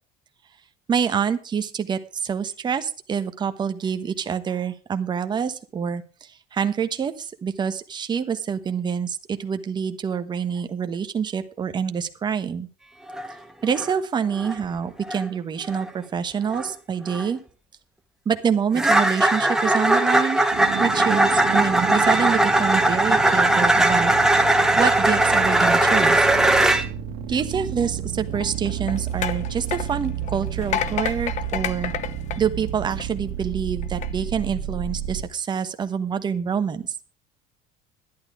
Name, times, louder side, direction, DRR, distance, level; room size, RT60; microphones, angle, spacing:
voice 1, 0.9-6.0 6.5-12.7 13.6-17.4 18.2-20.5 20.8-24.1 24.4-26.3 27.3-31.9 32.4-36.9, right 7 dB, 25° right, 9 dB, 1.2 m, -26 dB
sound 1, 13.1-13.3 13.6-14.0 14.4-14.6 15.0-15.2 15.6-15.9 16.5-16.7 17.1-17.3 18.7-26.8, right 2 dB, 5° right, 1.2 m, -19 dB
sound 2, 20.5-35.2, right 9 dB, 60° right, 2.0 m, -31 dB
sound 3, 28.3-33.3 33.8-34.1, left 10 dB, 45° left, 1.0 m, -31 dB
11.5 x 11.5 x 4.8 m, 0.38 s
cardioid pair, 145°, 17 cm